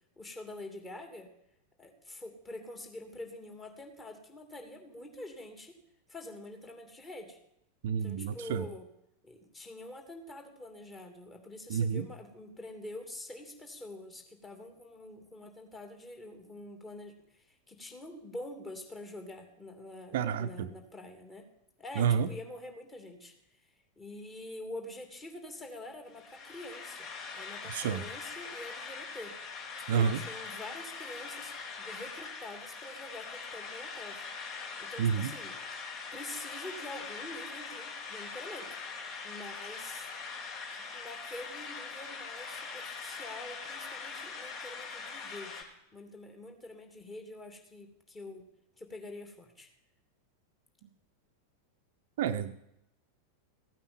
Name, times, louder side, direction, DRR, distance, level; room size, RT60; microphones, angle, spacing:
voice 1, 0.2-1.3 1.8-5.8 6.1-7.4 7.9-8.9 9.2-21.5 21.8-23.3 23.6-27.1 27.3-29.4 29.9-34.3 34.8-35.6 36.1-38.8 39.2-40.1 40.7-45.7 45.9-48.5 48.8-49.7, left 1 dB, 15° left, 4 dB, 2.8 m, -46 dB
voice 2, 7.8-8.7 11.7-12.1 20.1-20.7 22.0-22.3 27.7-28.0 29.9-30.2 35.0-35.3 52.2-52.5, right 7 dB, 55° right, 9 dB, 0.8 m, -29 dB
sound 1, 26.1-45.6, left 5 dB, 40° left, 2.7 m, -42 dB
15.5 x 9.1 x 7.1 m, 0.80 s
figure-of-eight pair, 90°, 0 cm